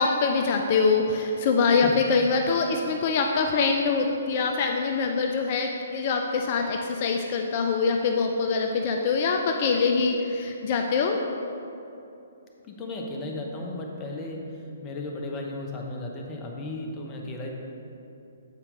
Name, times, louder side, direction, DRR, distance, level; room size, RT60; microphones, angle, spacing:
voice 1, 0.0-11.2, left 4 dB, 40° left, 3 dB, 0.4 m, -24 dB
voice 2, 12.6-17.5, left 2 dB, 25° left, 0 dB, 0.9 m, -35 dB
8.1 x 4.4 x 3.8 m, 2.8 s
figure-of-eight pair, 125°, 0 cm